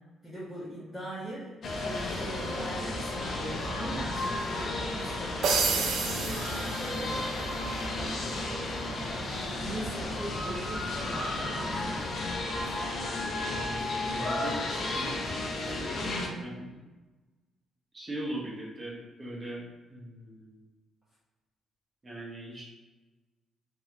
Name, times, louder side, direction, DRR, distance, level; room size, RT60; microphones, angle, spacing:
voice 1, 0.2-8.6 9.6-12.3 16.0-16.5, right 1 dB, 5° left, -12 dB, 1.2 m, -41 dB
sound 1, 1.6-16.3, left 2 dB, 55° left, 0.5 m, -33 dB
sound 2, 1.8-11.7, left 1 dB, 70° left, 1.4 m, -41 dB
sound 3, 5.4-7.5, right 5 dB, 80° right, 0.4 m, -30 dB
voice 2, 13.4-14.6 14.8-15.2 16.4-16.5 17.9-19.6 19.9-20.6 22.0-22.6, right 1 dB, 25° right, -5 dB, 1.1 m, -40 dB
2.9 x 2.9 x 2.5 m, 1.2 s
cardioid pair, 90°, 0 cm